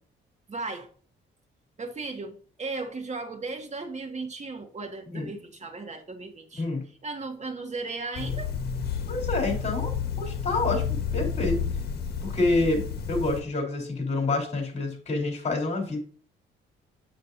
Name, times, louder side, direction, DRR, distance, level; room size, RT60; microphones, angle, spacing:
voice 1, 0.5-0.9 1.8-6.6 7.0-8.5, right 3 dB, 35° right, 1.9 m, -36 dB
sound 1, 8.2-13.4, left 7 dB, 55° left, 1.3 m, -30 dB
voice 2, 9.1-10.8 11.1-11.6 12.2-16.0, left 2 dB, 35° left, 3.8 m, -28 dB
7.7 x 7.4 x 2.7 m
cardioid pair, 90°, 20 cm